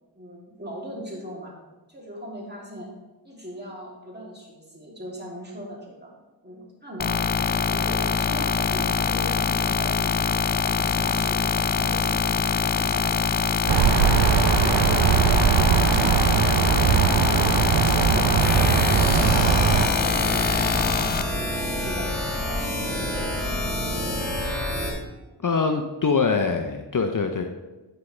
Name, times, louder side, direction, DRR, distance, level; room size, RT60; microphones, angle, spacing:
voice 1, 0.1-1.5 1.9-2.9 3.2-6.1 6.4-7.2 7.6-10.1 10.6-11.5 11.8-12.4 12.9-16.0 16.4-17.5 17.8-18.4 18.7-20.6 21.2-24.2, equal, 20° right, -3 dB, 2.9 m, -39 dB
sound 1, 7.0-21.2, left 6 dB, 25° left, 0.3 m, -24 dB
sound 2, 13.7-19.9, right 8 dB, 70° right, 0.6 m, -20 dB
sound 3, 18.4-24.9, left 1 dB, 5° left, 2.3 m, -28 dB
voice 2, 25.4-27.4, left 5 dB, 45° left, 5 dB, 0.7 m, -23 dB
9.3 x 6.4 x 3.2 m, 1.2 s
cardioid pair, 45°, 44 cm